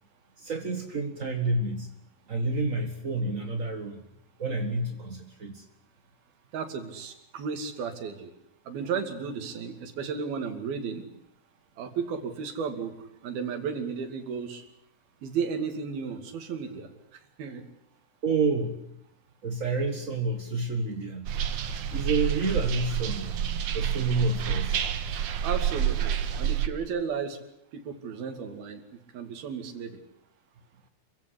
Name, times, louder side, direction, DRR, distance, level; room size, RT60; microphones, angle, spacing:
voice 1, 0.4-1.9 2.3-4.0 4.4-5.6 18.2-18.8 19.4-21.3 21.9-23.3 23.7-24.9, right 3 dB, 40° right, 5 dB, 1.1 m, -29 dB
voice 2, 6.5-8.3 8.7-11.0 11.8-12.9 13.2-14.6 15.2-16.9 17.4-17.6 25.4-27.4 27.7-28.8 29.1-29.9, right 6 dB, 85° right, 8 dB, 4.4 m, -33 dB
sound 1, 21.3-26.7, right 9 dB, 60° right, 2.7 m, -28 dB
27.0 x 16.5 x 10.0 m, 0.78 s
omnidirectional pair, 4.2 m